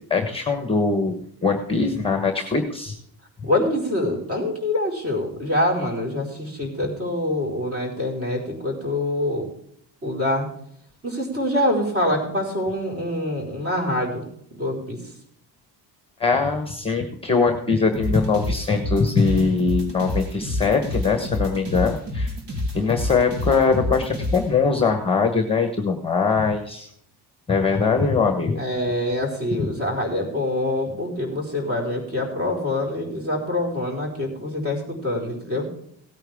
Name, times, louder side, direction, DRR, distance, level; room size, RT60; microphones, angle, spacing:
voice 1, 0.1-3.0 16.2-22.3 22.7-26.9 27.5-28.6 29.6-29.7, left 4 dB, 10° left, 6 dB, 1.2 m, -22 dB
voice 2, 3.4-9.4 10.0-10.5 11.0-14.3 14.5-15.0 28.6-35.7, left 1 dB, 30° right, 0 dB, 4.6 m, -25 dB
sound 1, 17.9-24.4, left 1 dB, 60° right, 3.4 m, -28 dB
17.0 x 9.0 x 3.6 m, 0.68 s
cardioid pair, 155°, 45 cm